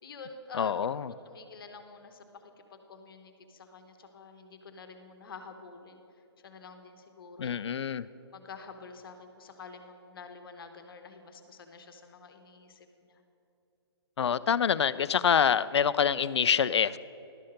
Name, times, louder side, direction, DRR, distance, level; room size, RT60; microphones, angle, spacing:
voice 1, 0.0-0.8 1.2-6.0 6.4-7.6 8.3-13.2, left 4 dB, 55° left, 7 dB, 1.1 m, -48 dB
voice 2, 0.6-1.1 7.4-8.1 14.2-17.0, left 7 dB, 75° left, 17 dB, 0.4 m, -26 dB
12.0 x 5.6 x 6.5 m, 2.8 s
hypercardioid pair, 150°, 15 cm